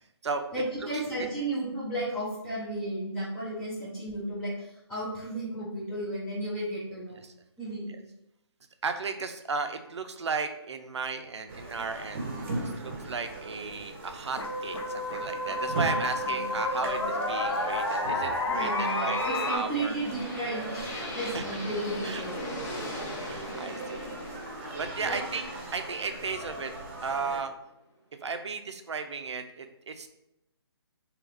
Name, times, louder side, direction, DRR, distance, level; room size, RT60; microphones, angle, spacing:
voice 1, 0.5-7.2 7.6-8.1 16.2-17.2 18.5-20.9 21.2-22.5 25.0-25.2, right 1 dB, 5° left, -8 dB, 0.3 m, -34 dB
voice 2, 8.8-12.3 12.6-20.0 21.0-21.4 22.0-22.2 22.9-24.1 24.8-25.4 25.7-26.7 27.0-27.5 28.2-30.1, right 4 dB, 85° right, 7 dB, 0.4 m, -35 dB
sound 1, 11.5-27.4, right 2 dB, 30° right, 0.6 m, -39 dB
sound 2, 13.7-13.8 14.4-19.6, left 2 dB, 80° left, 0.9 m, -30 dB
sound 3, 19.2-27.1, left 1 dB, 35° left, 0.8 m, -40 dB
2.8 x 2.4 x 3.5 m, 0.84 s
hypercardioid pair, 155°, 14 cm